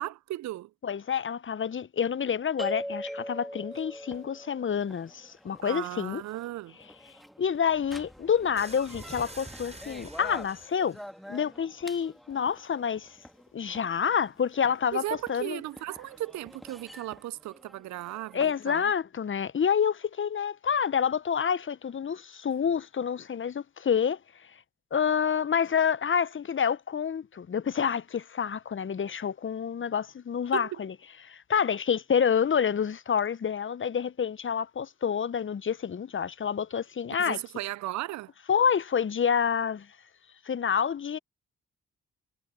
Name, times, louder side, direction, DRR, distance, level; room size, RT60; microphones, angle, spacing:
voice 1, 0.0-0.7 5.6-6.8 14.9-18.9 30.5-30.8 37.2-38.3, right 15 dB, 55° right, 0.5 m, -36 dB
voice 2, 0.8-6.2 7.4-11.0 11.3-13.2 13.5-15.0 15.3-15.6 18.3-24.2 24.9-30.9 31.2-37.4 38.5-39.9 40.5-41.2, left 7 dB, 35° left, 0.8 m, -28 dB
sound 1, 2.6-18.6, equal, ahead, 2.2 m, -44 dB
sound 2, 8.6-11.0, right 2 dB, 20° right, 4.9 m, -46 dB
hypercardioid pair, 45°, 34 cm